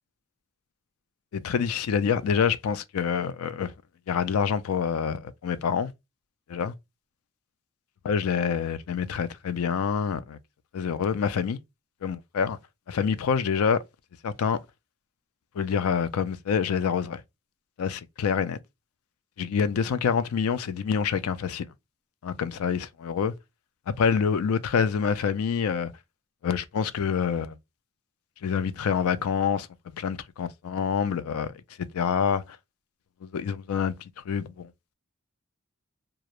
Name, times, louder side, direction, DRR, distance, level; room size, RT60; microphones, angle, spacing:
voice 1, 1.3-3.7 4.1-5.9 6.5-6.7 8.0-10.4 10.7-11.6 12.0-12.6 12.9-13.8 14.2-14.6 15.6-17.2 17.8-18.6 19.5-21.7 22.2-23.3 23.9-25.9 26.4-27.6 28.4-31.5 31.8-32.6 33.2-34.0 34.3-34.7, left 6 dB, 85° left, 0.4 m, -26 dB
2.3 x 2.0 x 2.8 m
head